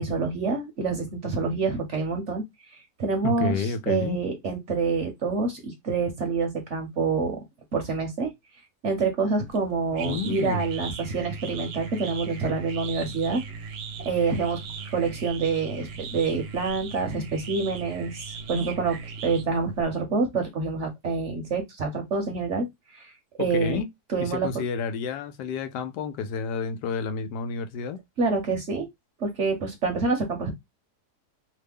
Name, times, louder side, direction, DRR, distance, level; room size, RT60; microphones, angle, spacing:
voice 1, 0.0-2.4 3.0-7.4 7.7-8.3 8.8-13.4 14.0-14.6 14.9-22.7 22.9-23.1 23.4-23.8 24.1-24.5 28.2-28.9 29.2-30.5, right 4 dB, 55° right, 0.9 m, -27 dB
voice 2, 3.2-4.2 10.0-10.6 23.4-23.9 24.2-28.0, left 5 dB, 85° left, 1.2 m, -30 dB
sound 1, 9.5-19.8, right 5 dB, 85° right, 1.3 m, -38 dB
3.1 x 2.1 x 3.4 m
omnidirectional pair, 1.8 m